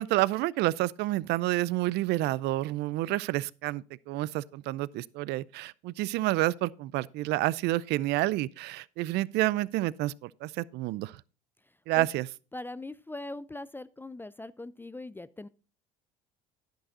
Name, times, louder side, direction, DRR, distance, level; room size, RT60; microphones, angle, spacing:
voice 1, 0.0-11.1 11.9-12.3, right 17 dB, 60° right, 0.5 m, -29 dB
voice 2, 12.5-15.5, left 2 dB, 10° left, 0.4 m, -40 dB
11.0 x 10.5 x 2.6 m
hypercardioid pair, 65°, 20 cm